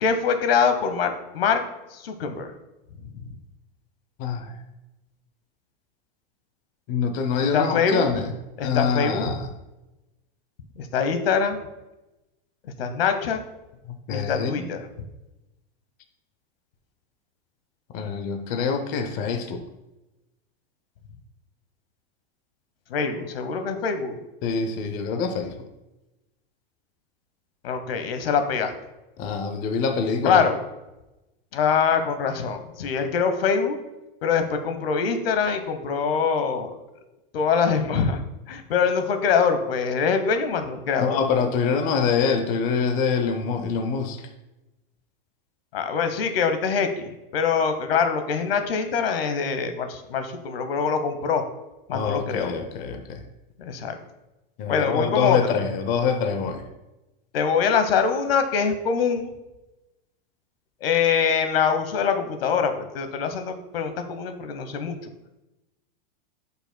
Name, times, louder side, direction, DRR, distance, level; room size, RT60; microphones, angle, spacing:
voice 1, 0.0-1.6 1.9-2.5 3.0-3.1 7.5-8.1 8.6-9.4 10.8-11.6 12.6-13.4 14.1-14.9 22.9-24.2 27.6-28.7 30.2-30.6 31.5-33.8 34.2-36.7 37.3-38.2 38.5-41.2 45.7-51.4 51.9-52.5 53.6-54.0 54.7-55.6 57.3-59.3 60.8-65.1, left 6 dB, 90° left, 8 dB, 1.0 m, -24 dB
voice 2, 4.2-4.6 6.9-8.3 8.6-9.5 13.9-14.6 17.9-19.6 24.4-25.6 29.2-30.4 41.0-44.3 51.9-53.2 54.6-56.6, left 5 dB, 30° left, 6 dB, 0.6 m, -25 dB
10.0 x 5.6 x 2.2 m, 0.99 s
supercardioid pair, 155°, 29 cm